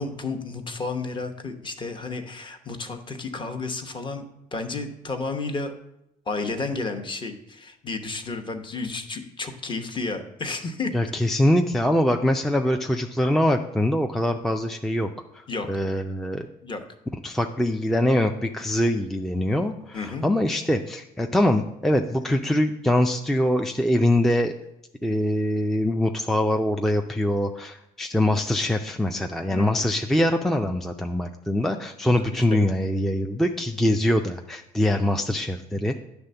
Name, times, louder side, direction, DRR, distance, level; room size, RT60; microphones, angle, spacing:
voice 1, 0.0-4.2 4.5-5.7 6.3-10.9 15.5-15.7 16.6-16.8 19.9-20.3 29.5-29.8 32.5-32.6, left 3 dB, 30° left, 5 dB, 0.9 m, -31 dB
voice 2, 10.9-16.5 17.2-24.5 25.0-36.0, left 1 dB, ahead, 4 dB, 0.4 m, -23 dB
9.6 x 3.5 x 6.7 m, 0.84 s
cardioid pair, 110°, 17 cm